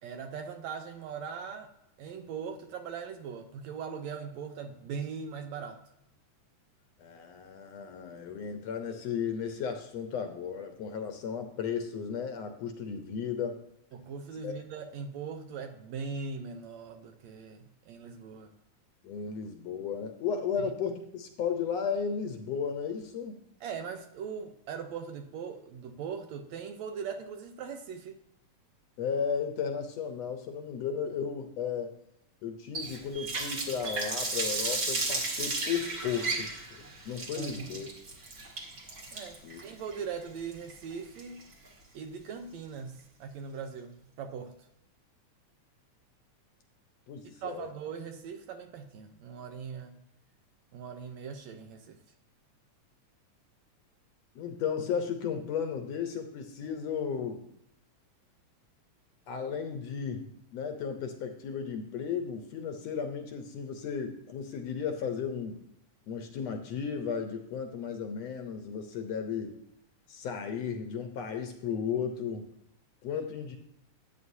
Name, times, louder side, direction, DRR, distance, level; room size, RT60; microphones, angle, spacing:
voice 1, 0.0-1.7 2.0-5.8 13.9-18.5 20.6-20.7 23.6-28.2 37.4-37.8 39.1-41.5 41.9-44.5 47.4-50.0 50.7-52.0 73.1-73.2, right 6 dB, 70° right, 6 dB, 1.9 m, -40 dB
voice 2, 7.0-13.6 14.4-14.6 19.0-23.4 29.0-32.0 32.4-37.9 39.4-39.6 47.1-47.7 54.4-57.4 59.3-65.6 66.1-69.6 70.1-72.5 73.0-73.6, left 6 dB, 70° left, 6 dB, 1.8 m, -34 dB
Water tap faucet, 32.7-41.7, right 3 dB, 35° right, 1.6 m, -34 dB
13.0 x 9.1 x 2.7 m, 0.78 s
omnidirectional pair, 3.6 m